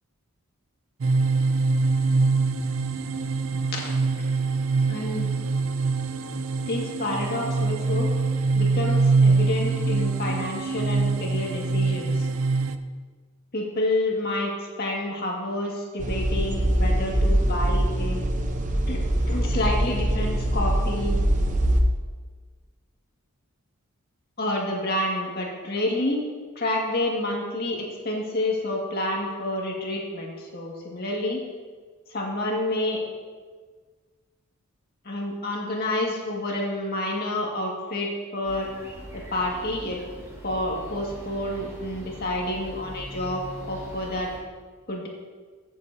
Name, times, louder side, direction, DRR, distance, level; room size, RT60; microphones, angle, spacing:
sound 1, 1.0-12.8, right 3 dB, 70° right, 0.5 m, -24 dB
voice 1, 3.5-4.3 4.9-5.3 6.7-8.1 8.6-12.3 13.5-18.2 18.9-19.0 19.3-21.2 24.4-26.2 26.6-31.4 32.1-33.0 35.0-38.7 39.1-40.0 40.4-44.3 44.9-45.1, left 1 dB, 45° left, -1 dB, 1.9 m, -29 dB
sound 2, 16.0-21.8, right 1 dB, 35° right, 0.7 m, -23 dB
sound 3, 38.4-44.4, right 1 dB, 15° right, 2.0 m, -41 dB
14.5 x 7.4 x 2.7 m, 1.5 s
head